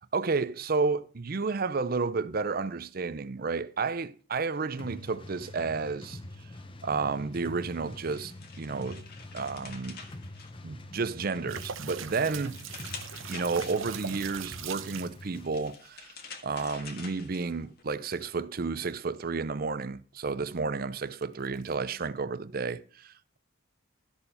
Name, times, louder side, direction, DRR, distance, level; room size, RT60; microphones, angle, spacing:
voice 1, 0.1-6.2 6.8-8.3 8.6-9.0 9.3-10.0 10.6-12.6 13.3-16.1 16.4-23.1, right 4 dB, 45° right, 0.6 m, -31 dB
sound 1, 4.8-15.5, left 1 dB, 25° left, 0.8 m, -45 dB
sound 2, 7.7-11.1 11.5-14.2 15.1-17.8, left 5 dB, 50° left, 1.7 m, -48 dB
sound 3, 11.5-15.2 21.2-21.8, right 8 dB, 85° right, 0.8 m, -41 dB
13.0 x 6.9 x 5.6 m
head